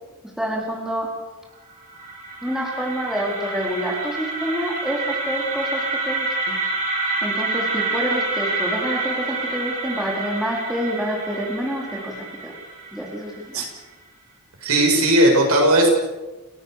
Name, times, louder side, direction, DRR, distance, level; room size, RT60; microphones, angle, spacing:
voice 1, 0.4-1.1 2.4-6.6 7.2-12.5 12.9-13.6, equal, ahead, -2 dB, 4.4 m, -27 dB
sound 1, 1.7-13.6, right 3 dB, 35° right, 7.2 m, -28 dB
voice 2, 14.6-15.9, right 1 dB, 80° right, 1 dB, 7.1 m, -16 dB
29.5 x 17.0 x 6.8 m, 1.2 s
head